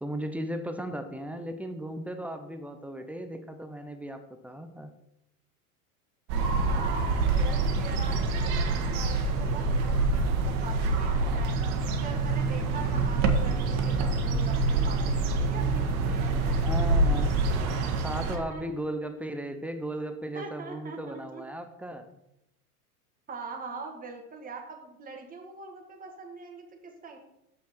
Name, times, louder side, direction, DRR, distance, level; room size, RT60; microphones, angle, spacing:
voice 1, 0.0-4.9 16.6-17.4 18.0-22.2, right 1 dB, 5° right, 7 dB, 0.5 m, -36 dB
sound 1, 6.3-18.4, right 3 dB, 55° right, 1.4 m, -26 dB
voice 2, 6.6-7.1 7.4-11.6 11.8-17.0 18.3-18.7 20.3-21.4 23.3-27.2, right 4 dB, 20° right, 1 dB, 1.5 m, -43 dB
7.0 x 5.7 x 4.4 m, 0.84 s
hypercardioid pair, 110°, 45 cm